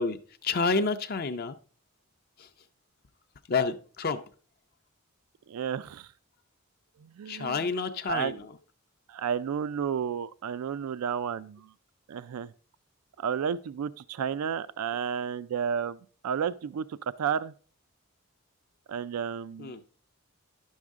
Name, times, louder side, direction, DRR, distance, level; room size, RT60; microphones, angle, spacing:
voice 1, 0.0-1.6 2.4-2.5 3.5-4.2 7.3-8.5 19.6-19.8, left 4 dB, 45° left, 0.5 m, -29 dB
voice 2, 5.5-6.1 7.0-7.7 8.1-8.4 9.1-11.7 12.1-12.5 13.2-17.5 18.9-19.7, right 7 dB, 85° right, 0.4 m, -32 dB
11.0 x 6.4 x 3.5 m
head